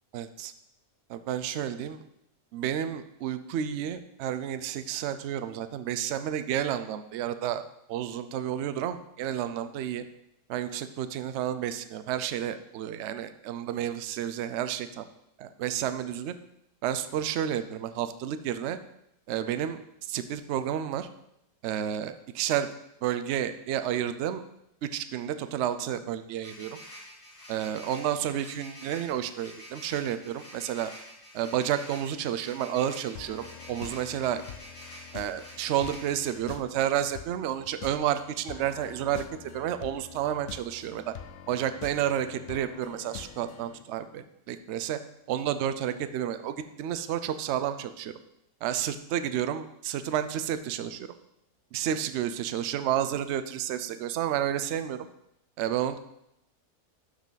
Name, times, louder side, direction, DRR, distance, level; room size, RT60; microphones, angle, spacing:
voice 1, 0.1-0.5 1.1-2.0 2.5-10.0 10.5-15.1 15.4-16.4 16.8-18.8 19.3-19.8 20.1-21.1 21.6-22.7 23.0-24.4 24.8-26.8 27.5-30.9 31.3-34.4 35.1-41.1 41.5-45.0 45.3-48.1 48.6-51.1 51.7-55.1 55.6-56.0, right 10 dB, 70° right, 10 dB, 0.6 m, -31 dB
sound 1, 26.4-36.4, equal, 35° left, 2.5 m, -48 dB
sound 2, 33.1-43.8, left 9 dB, 75° left, 0.7 m, -46 dB
12.0 x 4.8 x 3.9 m, 0.81 s
omnidirectional pair, 1.7 m